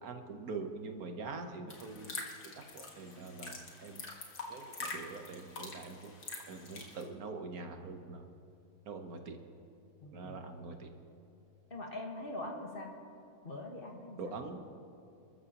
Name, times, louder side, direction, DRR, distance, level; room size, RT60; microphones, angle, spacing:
voice 1, 0.0-2.1 2.6-4.0 4.5-6.1 6.5-8.2 8.9-9.4 10.1-10.9 14.2-14.6, right 4 dB, 70° right, 5 dB, 1.5 m, -44 dB
sound 1, 1.7-7.0, left 3 dB, 80° left, 2.2 m, -45 dB
voice 2, 10.0-10.3 11.7-12.9 13.4-14.2, left 2 dB, 35° left, 0 dB, 1.7 m, -42 dB
27.0 x 13.5 x 2.9 m, 2.7 s
omnidirectional pair, 1.6 m